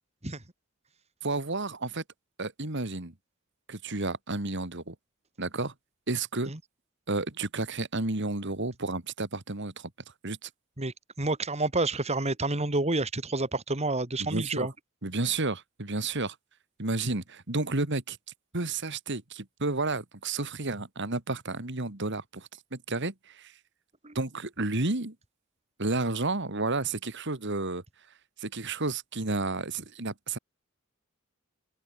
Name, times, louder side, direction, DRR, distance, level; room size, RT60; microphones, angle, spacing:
voice 1, 1.2-2.0 2.4-3.1 3.7-4.9 5.4-5.7 6.1-6.5 7.1-9.9 10.2-10.5 14.2-14.7 15.0-16.4 16.8-18.2 18.5-23.5 24.1-25.2 25.8-27.8 28.4-30.4, right 3 dB, 60° right, 2.3 m, -31 dB
voice 2, 10.8-14.7 24.0-24.1, right 2 dB, 30° right, 2.5 m, -29 dB
open air
head